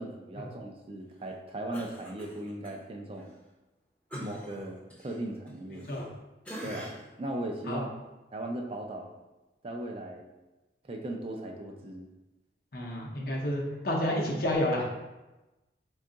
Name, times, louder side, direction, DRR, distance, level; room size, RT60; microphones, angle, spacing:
voice 1, 0.0-3.3 4.2-4.8 5.0-5.9 6.6-7.9 8.3-9.1 9.6-10.3 10.9-12.1, right 1 dB, 30° right, 2 dB, 0.3 m, -38 dB
Cough, 1.7-2.8 3.1-3.3 4.1-6.2 6.4-7.2 7.6-7.8, right 1 dB, 10° left, 0.6 m, -45 dB
voice 2, 12.7-15.0, left 1 dB, 55° left, -1 dB, 0.7 m, -30 dB
3.6 x 2.3 x 3.8 m, 1.1 s
head